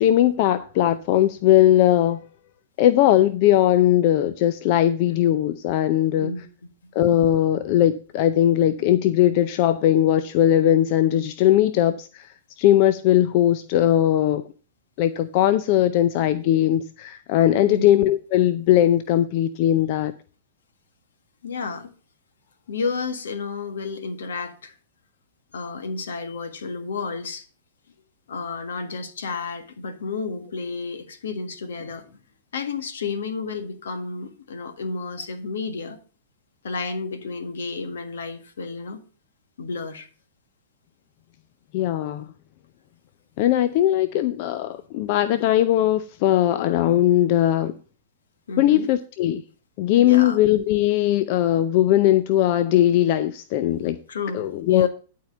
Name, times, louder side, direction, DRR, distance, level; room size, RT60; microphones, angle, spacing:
voice 1, 0.0-2.2 2.8-6.3 6.9-14.4 15.0-20.1 41.7-42.3 43.4-47.7 48.6-49.4 49.8-54.0 54.3-54.9, left 12 dB, 50° left, 0.5 m, -19 dB
voice 2, 17.6-17.9 21.4-21.9 22.7-24.7 25.5-27.4 28.3-32.2 32.5-36.0 36.6-39.0 39.6-40.1 48.5-48.9 50.0-50.4 54.1-54.9, left 4 dB, 80° left, 1.7 m, -31 dB
11.0 x 4.6 x 6.8 m
hypercardioid pair, 120°, 0 cm